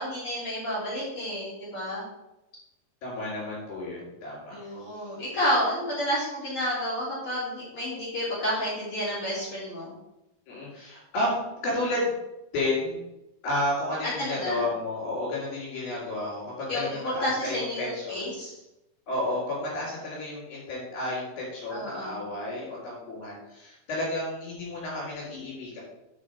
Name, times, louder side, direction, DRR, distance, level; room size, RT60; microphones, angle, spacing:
voice 1, 0.0-2.0 4.5-9.9 14.0-14.6 16.7-18.6 21.7-22.2, equal, 35° left, -8 dB, 3.4 m, -30 dB
voice 2, 3.0-4.6 10.5-12.1 12.5-13.0 13.4-18.2 19.1-25.8, left 1 dB, 65° left, -9 dB, 5.3 m, -31 dB
10.5 x 5.5 x 5.0 m, 0.92 s
omnidirectional pair, 4.7 m